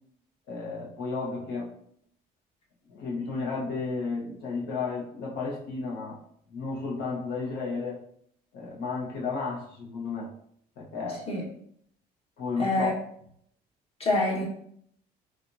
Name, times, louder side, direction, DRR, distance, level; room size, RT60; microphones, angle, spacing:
voice 1, 0.5-1.8 2.9-6.2 6.5-8.0 8.5-10.3 10.8-11.3 12.4-12.9, left 4 dB, 80° left, -3 dB, 1.1 m, -33 dB
voice 2, 12.6-12.9 14.0-14.5, left 2 dB, 35° left, -3 dB, 1.4 m, -25 dB
4.3 x 2.6 x 2.7 m, 0.66 s
cardioid pair, 110°, 17 cm